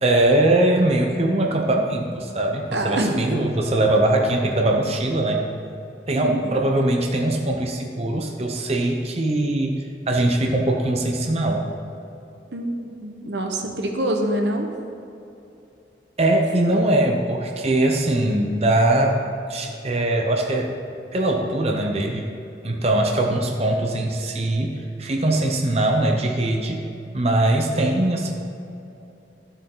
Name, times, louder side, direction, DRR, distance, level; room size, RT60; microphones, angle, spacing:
voice 1, 0.0-5.4 6.1-11.7 16.2-19.2 19.5-20.8 21.1-22.3 22.6-26.9 27.1-28.3, right 1 dB, 35° right, 1 dB, 0.8 m, -21 dB
voice 2, 2.7-3.2 6.2-6.5 12.5-14.7, right 1 dB, 80° right, 3 dB, 1.2 m, -25 dB
12.0 x 8.0 x 3.9 m, 2.8 s
head